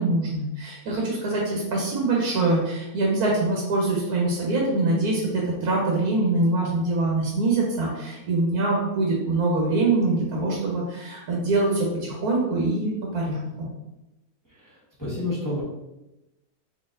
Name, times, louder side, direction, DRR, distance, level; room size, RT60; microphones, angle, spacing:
voice 1, 0.0-13.7, right 2 dB, 80° right, -2 dB, 1.4 m, -24 dB
voice 2, 14.4-15.6, left 2 dB, 15° left, -9 dB, 1.3 m, -30 dB
4.0 x 3.0 x 3.8 m, 0.96 s
omnidirectional pair, 1.6 m